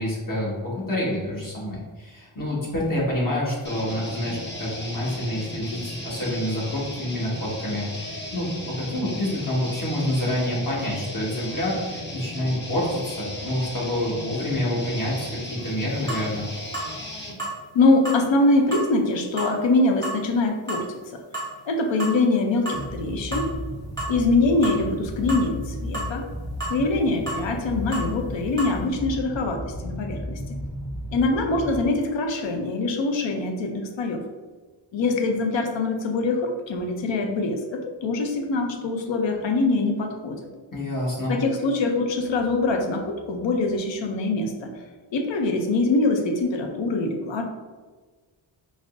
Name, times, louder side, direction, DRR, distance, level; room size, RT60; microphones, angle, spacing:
voice 1, 0.0-8.5 8.8-16.4 40.7-41.3, left 1 dB, 45° left, -6 dB, 1.4 m, -27 dB
sound 1, 3.6-17.4, left 1 dB, 25° left, 0.8 m, -36 dB
sound 2, 15.6-15.7 16.1-16.3 16.7-16.9 17.4-17.6 18.0-18.2 18.7-18.9 19.4-19.5 20.0-20.2 20.7-20.8 21.3-21.5 22.0-22.2 22.6-22.8 23.3-23.5 24.0-24.1 24.6-24.8 25.3-25.4 25.9-26.1 26.6-26.8 27.3-27.4 27.9-28.1 28.6-28.7, right 2 dB, 5° left, 1.4 m, -31 dB
voice 2, 17.7-21.2 21.7-23.5 24.1-26.2 26.7-30.6 31.1-34.2 34.9-40.4 41.3-44.7 45.1-47.4, left 2 dB, 70° left, 3 dB, 0.6 m, -23 dB
sound 3, 22.7-31.9, left 1 dB, 10° right, 0.4 m, -34 dB
4.9 x 2.0 x 2.5 m, 1.4 s
cardioid pair, 80°, 47 cm